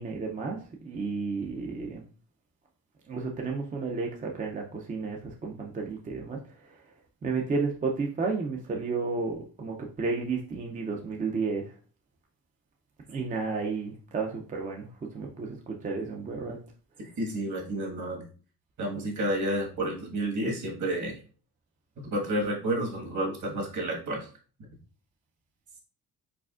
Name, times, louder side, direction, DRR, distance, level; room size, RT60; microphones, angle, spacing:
voice 1, 0.0-2.0 3.1-6.9 7.2-11.7 13.1-16.6, right 4 dB, 20° right, 1 dB, 0.4 m, -32 dB
voice 2, 17.2-18.2 18.8-21.2 22.0-24.3, right 1 dB, 55° right, 0 dB, 1.5 m, -30 dB
4.8 x 4.2 x 2.4 m, 0.39 s
cardioid pair, 170°, 36 cm